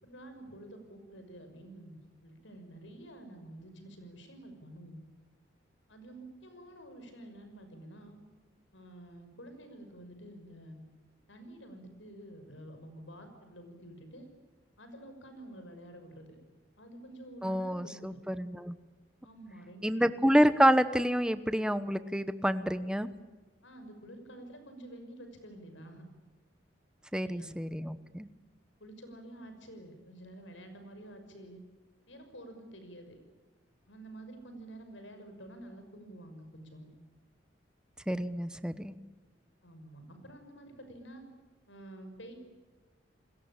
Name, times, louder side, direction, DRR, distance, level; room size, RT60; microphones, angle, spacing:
voice 1, 0.0-5.0 5.9-8.1 8.7-10.8 11.3-14.3 14.8-16.4 16.8-18.2 19.2-20.0 23.6-26.1 27.1-27.6 28.8-31.6 32.1-33.2 33.9-36.9 39.6-41.2 41.7-42.3, right 1 dB, 75° left, 7 dB, 6.1 m, -49 dB
voice 2, 17.4-18.8 19.8-23.1 27.1-28.3 38.1-38.9, equal, 5° right, 13 dB, 1.0 m, -28 dB
29.0 x 21.0 x 8.8 m, 1.3 s
head